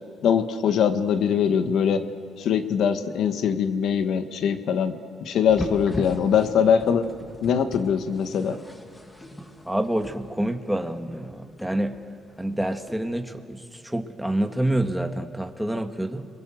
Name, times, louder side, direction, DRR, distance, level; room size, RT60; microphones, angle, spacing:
voice 1, 0.2-2.0 2.4-7.0 7.4-8.6, left 7 dB, 75° left, 9 dB, 1.5 m, -22 dB
sound 1, 5.5-13.0, left 1 dB, 15° left, 2.8 m, -39 dB
voice 2, 9.7-12.0 12.4-16.3, right 1 dB, 5° right, 5 dB, 1.7 m, -27 dB
29.5 x 22.5 x 7.8 m, 2.4 s
cardioid pair, 90°, 0 cm